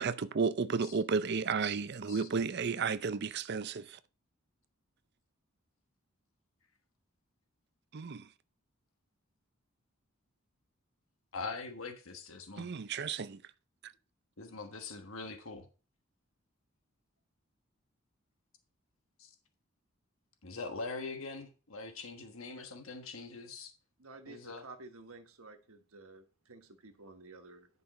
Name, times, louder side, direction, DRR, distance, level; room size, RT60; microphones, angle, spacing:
voice 1, 0.0-4.0 7.9-8.3 12.6-13.4, right 5 dB, 50° right, 0.5 m, -33 dB
voice 2, 11.3-12.7 14.4-15.7 19.2-19.3 20.4-23.7 24.3-24.6, left 3 dB, 75° left, 1.3 m, -43 dB
voice 3, 24.0-27.7, right 3 dB, 85° right, 1.3 m, -52 dB
10.5 x 5.4 x 4.2 m
head